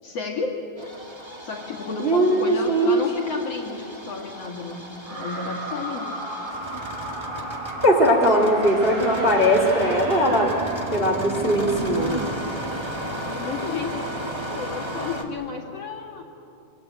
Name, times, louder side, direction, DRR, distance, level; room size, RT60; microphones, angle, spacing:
voice 1, 0.0-0.6 1.4-6.3 12.9-16.2, left 4 dB, 45° left, 0 dB, 2.9 m, -32 dB
Engine starting, 0.8-15.2, right 1 dB, 40° right, 0.4 m, -34 dB
voice 2, 2.0-3.0 7.8-10.5 10.9-12.1, equal, 20° right, 1 dB, 2.0 m, -20 dB
sound 1, 5.0-11.5, right 1 dB, 85° right, 9.7 m, -34 dB
25.5 x 24.5 x 9.0 m, 2.6 s
omnidirectional pair, 4.1 m